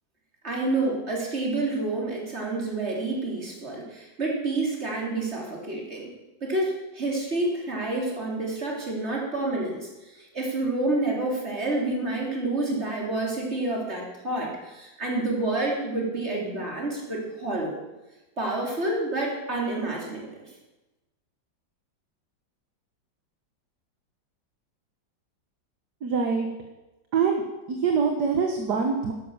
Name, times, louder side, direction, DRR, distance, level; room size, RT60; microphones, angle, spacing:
voice 1, 0.4-6.1 6.4-17.8 18.4-20.3, right 2 dB, 35° right, -2 dB, 3.7 m, -28 dB
voice 2, 26.0-26.5 27.1-27.4 27.7-29.1, right 5 dB, 60° right, 4 dB, 1.8 m, -24 dB
12.5 x 11.5 x 7.3 m, 1.1 s
omnidirectional pair, 2.1 m